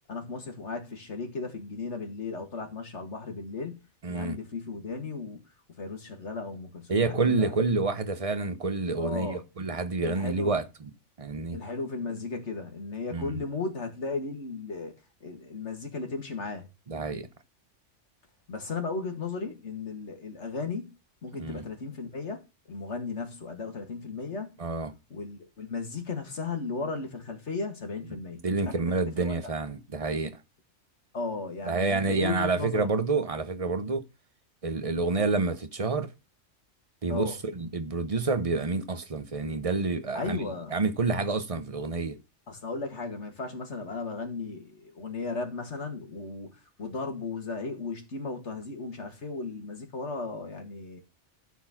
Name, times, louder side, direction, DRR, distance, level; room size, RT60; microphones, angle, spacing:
voice 1, 0.1-5.4 5.8-7.5 9.0-9.4 10.0-10.6 11.5-14.9 15.2-16.7 18.5-20.9 21.2-24.5 25.1-28.9 29.2-29.3 31.1-32.9 37.1-37.3 40.1-40.8 42.5-51.0, left 4 dB, 65° left, 2.3 m, -35 dB
voice 2, 4.0-4.4 6.9-10.6 11.2-11.6 13.1-13.4 16.9-17.3 21.4-21.6 24.6-24.9 28.1-30.4 31.6-34.0 34.6-36.1 37.0-42.2, right 3 dB, 30° right, 0.9 m, -28 dB
12.5 x 4.6 x 5.9 m
omnidirectional pair, 1.3 m